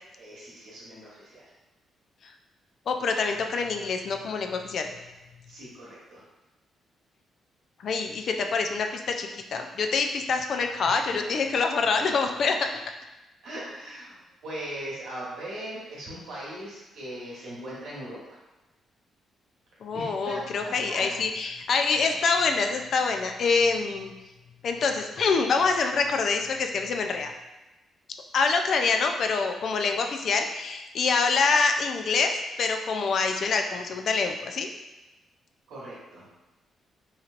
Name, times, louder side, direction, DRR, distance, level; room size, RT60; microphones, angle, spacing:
voice 1, 0.2-1.4 5.5-6.2 10.8-11.2 13.4-18.4 19.9-21.1 35.7-36.3, right 1 dB, 75° right, -6 dB, 1.2 m, -39 dB
voice 2, 2.9-4.9 7.8-12.7 19.8-24.1 24.6-27.3 28.3-34.7, left 4 dB, 65° left, 4 dB, 0.3 m, -26 dB
3.1 x 2.8 x 2.4 m, 1.0 s
supercardioid pair, 65°, 0 cm